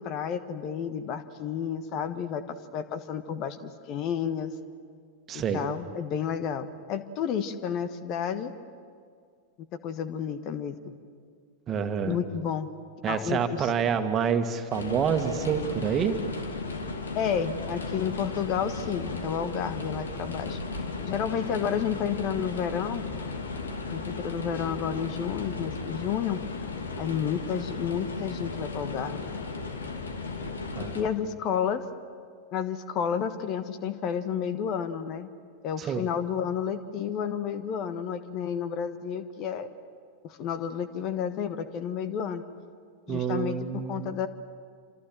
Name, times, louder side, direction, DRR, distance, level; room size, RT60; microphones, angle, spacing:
voice 1, 0.0-4.5 5.3-8.5 9.8-10.9 12.0-12.7 13.1-13.7 17.1-20.6 21.0-23.0 23.9-26.4 27.0-29.3 30.9-31.8 32.5-35.3 35.6-39.7 40.2-42.4 43.1-44.3, left 8 dB, 40° left, 12 dB, 1.3 m, -31 dB
voice 2, 5.3-5.6 11.7-12.2 13.0-16.1 30.8-31.0 35.8-36.0 43.1-44.2, right 7 dB, 25° right, 7 dB, 2.0 m, -27 dB
sound 1, 14.7-31.0, left 3 dB, 70° left, 2.6 m, -35 dB
28.5 x 27.0 x 7.7 m, 2.1 s
figure-of-eight pair, 90°, 0 cm